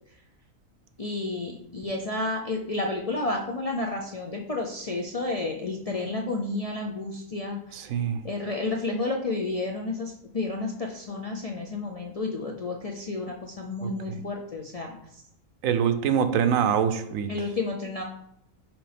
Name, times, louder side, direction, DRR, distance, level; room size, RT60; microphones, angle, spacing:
voice 1, 1.0-7.6 8.2-15.0 17.3-18.0, left 2 dB, 45° left, 0 dB, 0.4 m, -31 dB
voice 2, 7.7-8.3 13.8-14.2 15.6-17.3, right 8 dB, 80° right, 10 dB, 1.0 m, -25 dB
6.1 x 5.0 x 3.4 m, 0.75 s
omnidirectional pair, 1.4 m